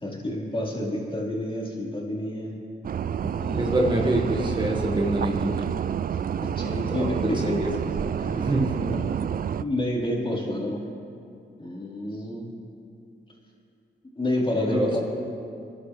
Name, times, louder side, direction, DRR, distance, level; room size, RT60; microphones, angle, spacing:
voice 1, 0.0-2.6 3.4-3.8 6.1-7.6 8.2-8.5 9.0-9.1 9.6-10.8 11.6-12.5 14.2-15.0, left 1 dB, 25° left, -4 dB, 4.4 m, -29 dB
sound 1, 2.8-9.6, right 8 dB, 45° right, 0.4 m, -29 dB
voice 2, 3.6-5.7 6.9-7.7 8.2-9.0 14.6-15.0, right 1 dB, 25° right, 0 dB, 1.7 m, -26 dB
26.5 x 11.5 x 3.4 m, 2.5 s
cardioid pair, 60°, 20 cm